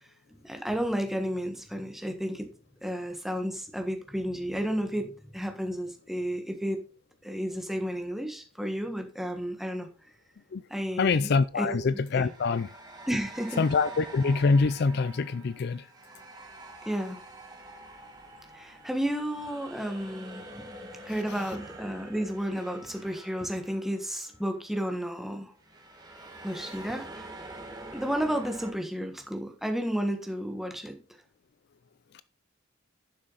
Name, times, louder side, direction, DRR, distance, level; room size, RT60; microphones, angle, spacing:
voice 1, 0.3-2.5 2.8-6.8 7.2-9.9 10.7-12.3 13.1-13.6 16.8-17.2 18.5-20.7 21.0-25.5 26.4-27.3 27.9-31.0, equal, ahead, 1.4 m, -32 dB
sound 1, 9.3-9.6 12.0-24.4 24.6-24.9 25.6-28.7, right 2 dB, 20° right, 1.7 m, -46 dB
voice 2, 11.0-12.7 13.6-15.8, left 4 dB, 55° left, 0.4 m, -25 dB
11.5 x 6.3 x 4.0 m
head